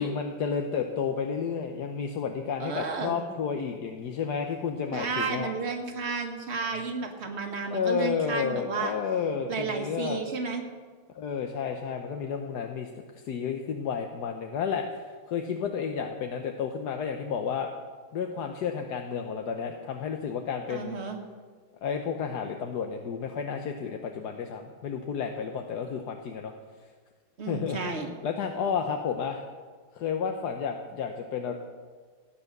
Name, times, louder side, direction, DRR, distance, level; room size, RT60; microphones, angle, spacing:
voice 1, 0.0-5.5 6.7-6.8 7.7-10.2 11.1-17.7 18.1-21.0 21.8-26.5 27.5-28.0 28.2-29.4 29.9-31.5, left 6 dB, 60° left, 4 dB, 1.3 m, -31 dB
voice 2, 2.6-3.2 4.9-8.9 9.5-10.6 20.7-21.2 27.4-28.1, right 4 dB, 35° right, 3 dB, 1.7 m, -32 dB
17.0 x 9.7 x 6.7 m, 1.5 s
omnidirectional pair, 2.3 m